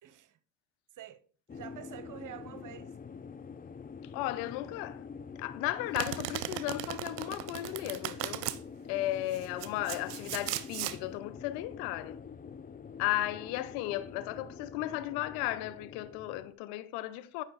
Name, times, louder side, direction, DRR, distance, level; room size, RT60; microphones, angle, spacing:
voice 1, 0.0-0.4 0.9-1.2 1.5-3.0, right 11 dB, 55° right, 1.2 m, -47 dB
sound 1, 1.5-16.5, left 6 dB, 25° left, 0.6 m, -46 dB
voice 2, 4.0-5.1 5.4-8.5 8.9-12.2 13.0-17.4, left 15 dB, 80° left, 0.8 m, -35 dB
Domestic sounds home sounds, 5.9-8.6 9.3-11.0, right 15 dB, 80° right, 0.7 m, -37 dB
9.9 x 5.7 x 4.1 m
hypercardioid pair, 65°, 37 cm